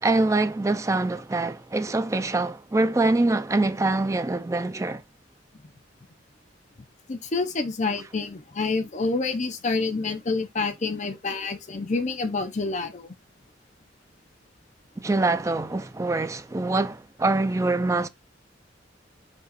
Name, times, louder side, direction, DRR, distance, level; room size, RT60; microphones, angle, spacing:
voice 1, 0.0-5.0 15.0-18.1, right 2 dB, 15° right, 0.4 m, -24 dB
voice 2, 7.1-13.1, left 3 dB, 40° left, 0.6 m, -28 dB
5.3 x 2.4 x 4.0 m
head